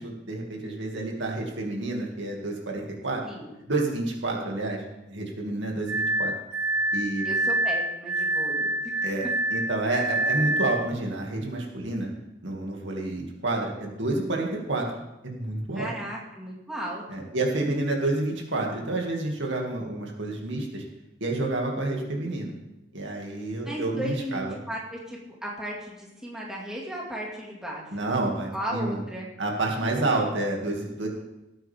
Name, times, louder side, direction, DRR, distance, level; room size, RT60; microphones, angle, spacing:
voice 1, 0.0-3.2 3.7-6.3 6.9-7.2 9.0-12.1 12.4-14.9 15.2-15.9 17.1-20.8 21.2-22.5 22.9-24.6 27.9-29.0 29.4-31.1, right 2 dB, 70° right, 0 dB, 2.3 m, -29 dB
Glass, 5.9-10.9, right 1 dB, 90° right, 1.7 m, -27 dB
voice 2, 7.2-8.7 15.7-17.3 23.6-27.9 28.5-29.3, equal, 5° right, -4 dB, 2.1 m, -35 dB
18.5 x 8.9 x 3.6 m, 0.95 s
head